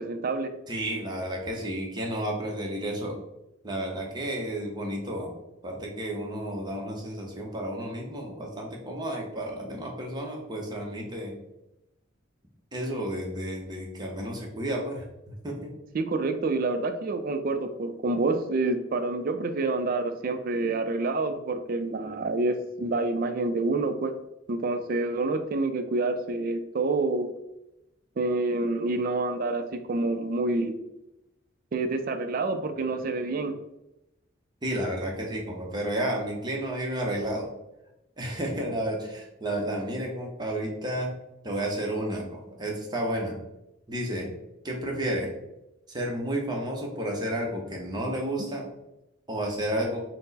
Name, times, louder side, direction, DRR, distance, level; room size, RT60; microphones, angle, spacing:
voice 1, 0.0-0.5 15.9-24.1 24.5-27.3 28.2-30.8 31.7-33.5, right 3 dB, 50° right, 8 dB, 0.4 m, -28 dB
voice 2, 0.7-3.1 3.6-5.3 5.6-11.3 12.7-15.7 34.6-37.5 38.2-41.1 41.4-43.4 43.9-44.3 44.6-45.3 45.9-48.7 49.3-50.0, right 1 dB, 20° right, -1 dB, 0.7 m, -31 dB
4.4 x 2.0 x 4.0 m, 0.91 s
head